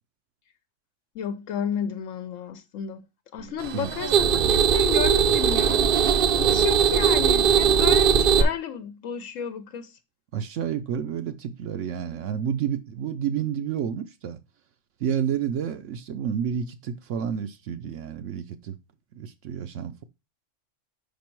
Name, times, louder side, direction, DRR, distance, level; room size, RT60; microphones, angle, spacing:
voice 1, 1.1-3.0 3.3-5.9 6.4-10.0, left 8 dB, 80° left, 1.0 m, -32 dB
sound 1, 3.6-8.4, right 8 dB, 55° right, 0.7 m, -20 dB
voice 2, 10.3-14.4 15.0-18.8 19.1-20.0, right 8 dB, 75° right, 1.0 m, -30 dB
5.2 x 5.2 x 4.4 m
omnidirectional pair, 1.3 m